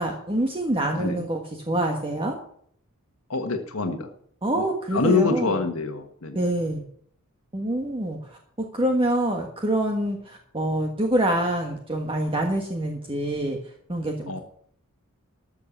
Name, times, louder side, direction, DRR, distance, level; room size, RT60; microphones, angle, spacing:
voice 1, 0.0-2.4 4.4-5.6 6.3-6.8 7.5-8.4 8.7-13.6 13.9-14.4, right 1 dB, 25° right, 2 dB, 1.4 m, -26 dB
voice 2, 1.0-1.3 3.3-4.1 4.6-4.7 4.9-6.4 14.3-14.4, left 4 dB, 70° left, 5 dB, 1.5 m, -25 dB
13.5 x 6.8 x 7.2 m, 0.62 s
head